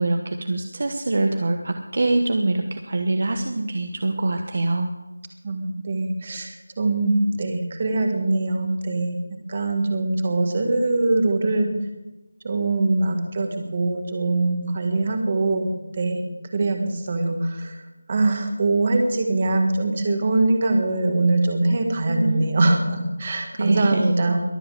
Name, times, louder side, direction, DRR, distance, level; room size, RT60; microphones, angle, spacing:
voice 1, 0.0-4.9 22.1-22.5 23.6-24.1, right 2 dB, 35° right, 6 dB, 1.1 m, -24 dB
voice 2, 5.4-9.2 9.5-11.7 12.4-16.2 16.5-17.8 18.1-24.4, right 2 dB, 20° right, 4 dB, 1.7 m, -22 dB
22.5 x 7.8 x 7.6 m, 1.0 s
figure-of-eight pair, 180°, 0 cm